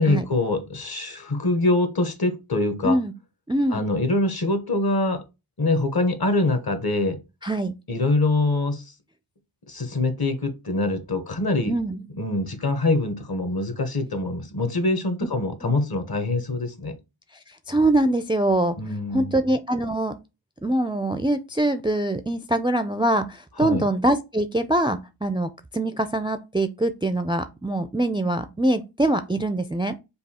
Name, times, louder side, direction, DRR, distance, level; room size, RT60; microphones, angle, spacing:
voice 1, 0.0-3.0 3.7-5.2 5.6-7.2 7.9-8.8 9.7-11.7 12.2-16.9 18.8-19.4 23.6-23.8, left 2 dB, 50° left, 1.1 m, -24 dB
voice 2, 3.5-3.8 7.4-7.7 11.7-12.1 15.6-15.7 17.5-18.8 19.1-20.1 20.6-29.9, right 1 dB, 10° right, 0.3 m, -23 dB
5.3 x 2.3 x 4.2 m
wide cardioid pair, 50°, 47 cm